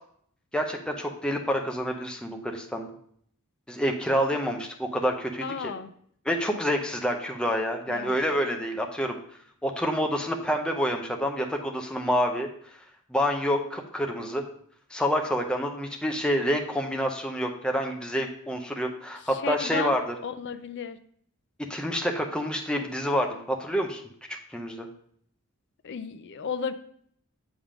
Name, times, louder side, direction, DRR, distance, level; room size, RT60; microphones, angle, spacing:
voice 1, 0.5-2.9 3.7-5.7 6.2-9.2 9.6-12.5 13.1-14.4 14.9-20.2 21.6-24.0 24.3-24.9, equal, 5° left, 2 dB, 0.7 m, -28 dB
voice 2, 5.4-5.9 7.9-8.2 19.3-20.0 20.2-21.0 25.8-26.7, left 5 dB, 50° left, 10 dB, 0.4 m, -33 dB
7.3 x 3.6 x 4.9 m, 0.64 s
head